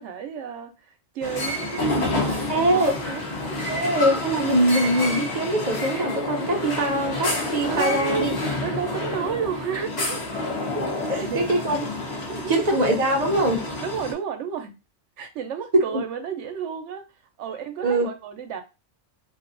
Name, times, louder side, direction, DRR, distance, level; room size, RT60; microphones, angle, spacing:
voice 1, 0.0-3.2 3.5-3.6 7.7-8.3 8.6-10.3 11.2-11.5 12.3-12.5 13.8-14.7 15.2-17.0 17.4-18.6, right 7 dB, 80° right, 1.0 m, -31 dB
sound 1, 1.2-14.1, left 2 dB, 40° left, 0.8 m, -29 dB
voice 2, 2.5-2.9 3.7-8.3 10.7-11.8 12.5-13.6 15.7-16.0 17.8-18.1, right 1 dB, 40° right, 0.8 m, -22 dB
2.5 x 2.3 x 3.7 m
omnidirectional pair, 1.2 m